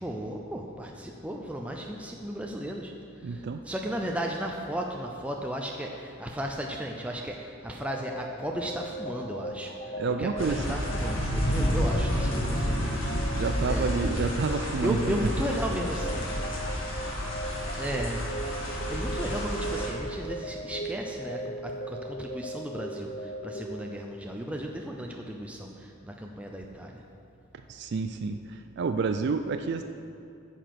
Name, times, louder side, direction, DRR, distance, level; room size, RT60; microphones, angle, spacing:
voice 1, 0.0-2.9 3.3-13.0 13.6-13.9 14.8-16.3 17.7-18.3 18.6-27.0, equal, 5° right, 1 dB, 0.5 m, -35 dB
voice 2, 3.2-3.6 10.0-10.8 13.3-15.3 27.7-29.8, right 4 dB, 60° right, 7 dB, 0.4 m, -29 dB
sound 1, 7.8-24.4, equal, 40° left, 0.7 m, -38 dB
sound 2, 10.4-19.9, equal, 80° left, 2.1 m, -30 dB
9.2 x 7.0 x 5.9 m, 2.6 s
head